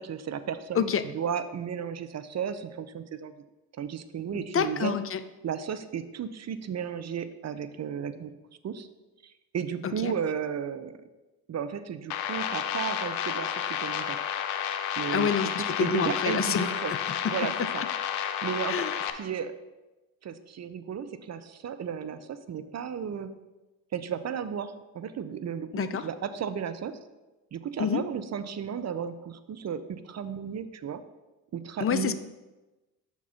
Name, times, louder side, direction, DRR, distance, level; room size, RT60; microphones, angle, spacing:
voice 1, 0.0-3.3 3.8-5.0 5.4-8.3 8.6-8.9 9.2-11.0 11.5-14.2 15.0-16.9 17.2-17.8 18.4-18.9 19.2-19.6 20.2-23.3 23.9-27.0 27.5-31.0 31.5-32.2, right 8 dB, 35° right, 12 dB, 0.5 m, -34 dB
voice 2, 4.5-5.2 9.8-10.1 15.1-16.7 18.7-18.9 25.7-26.0 27.8-28.0 31.8-32.2, left 7 dB, 30° left, 12 dB, 0.5 m, -27 dB
sound 1, 12.1-19.1, left 9 dB, 90° left, 0.6 m, -31 dB
5.9 x 4.4 x 5.5 m, 1.1 s
hypercardioid pair, 50°, 44 cm